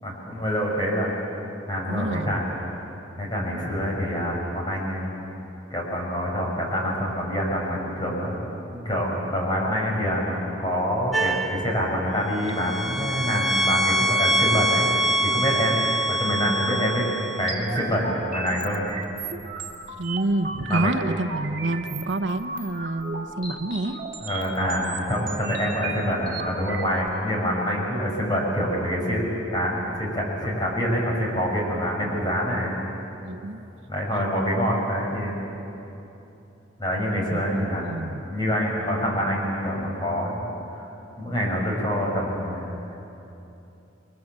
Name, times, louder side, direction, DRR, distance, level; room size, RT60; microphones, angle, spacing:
voice 1, 0.0-1.1 1.7-2.4 3.2-5.1 5.7-8.4 8.7-14.9 15.2-18.9 20.7-20.9 24.2-32.7 33.9-35.3 36.8-37.9 38.3-40.4 40.7-40.9 41.2-42.9, equal, 25° left, -2 dB, 5.9 m, -26 dB
voice 2, 1.9-2.4 20.0-24.0 33.2-33.6 37.3-38.2, right 2 dB, 70° right, 9 dB, 1.0 m, -28 dB
sound 1, 11.1-11.7 12.4-17.5, right 1 dB, ahead, 1.0 m, -24 dB
sound 2, 17.5-27.1, right 4 dB, 45° right, 2.3 m, -35 dB
29.5 x 22.5 x 7.5 m, 3.0 s
head